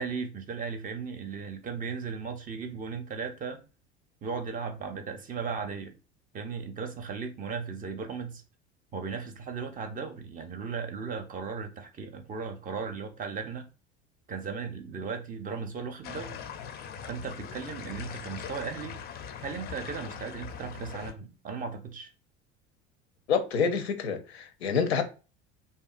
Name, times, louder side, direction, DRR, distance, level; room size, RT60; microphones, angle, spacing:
voice 1, 0.0-3.6 4.2-5.9 6.3-8.4 8.9-13.7 14.3-16.4 17.1-19.0 19.4-22.1, right 5 dB, 25° right, 0.5 m, -36 dB
sound 1, 16.0-21.1, left 7 dB, 30° left, 0.4 m, -41 dB
voice 2, 23.3-25.0, left 6 dB, 80° left, 0.5 m, -27 dB
2.6 x 2.3 x 2.4 m
hypercardioid pair, 70°, 31 cm